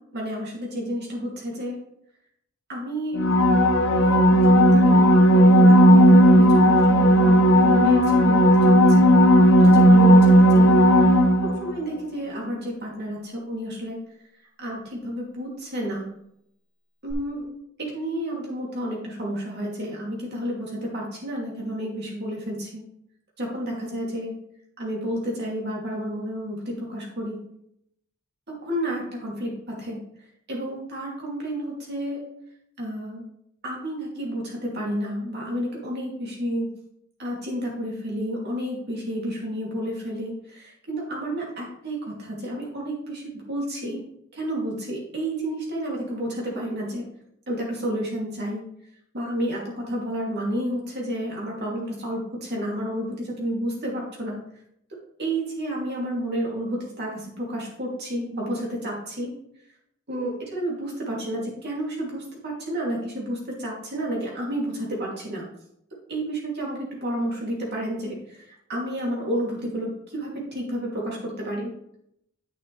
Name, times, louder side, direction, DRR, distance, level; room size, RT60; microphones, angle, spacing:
voice 1, 0.0-1.8 2.7-9.1 9.6-10.8 11.4-14.0 14.6-16.1 17.0-17.5 17.8-22.8 23.4-24.3 24.8-27.4 28.5-30.0 30.5-32.3 32.8-33.2 33.6-36.7 37.2-44.0 44.3-47.1 47.5-48.7 49.1-54.4 55.2-59.3 60.1-65.4 66.1-68.4 68.7-71.7, equal, 50° right, -2 dB, 2.6 m, -30 dB
sound 1, 3.1-11.8 17.1-17.2, equal, 65° left, 0.8 m, -15 dB
8.9 x 6.3 x 3.2 m, 0.75 s
head